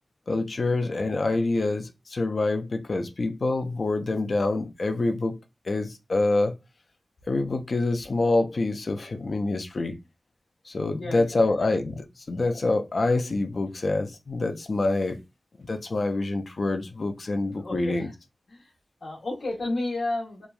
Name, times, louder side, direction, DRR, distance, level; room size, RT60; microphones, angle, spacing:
voice 1, 0.3-5.4 5.7-6.5 7.3-10.0 10.7-15.2 15.7-18.1, left 2 dB, 65° left, 0.4 m, -26 dB
voice 2, 10.9-11.7 17.5-18.1 18.5-18.7 19.0-20.5, left 2 dB, 90° left, 1.0 m, -32 dB
2.9 x 2.2 x 2.3 m
wide cardioid pair, 60°, 0 cm